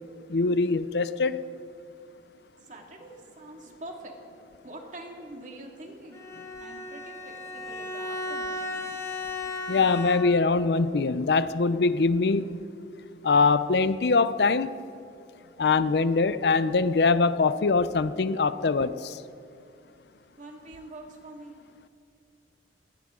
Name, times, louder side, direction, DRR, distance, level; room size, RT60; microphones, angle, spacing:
voice 1, 0.3-1.5 9.7-12.7 13.2-14.7 15.6-19.2, left 4 dB, 65° left, 14 dB, 0.5 m, -23 dB
voice 2, 2.6-4.1 4.6-6.2 6.6-8.7 20.4-21.5, right 1 dB, 45° right, 1 dB, 2.2 m, -44 dB
Bowed string instrument, 6.1-10.6, left 2 dB, 20° left, 1.6 m, -35 dB
21.0 x 17.5 x 3.8 m, 2.4 s
head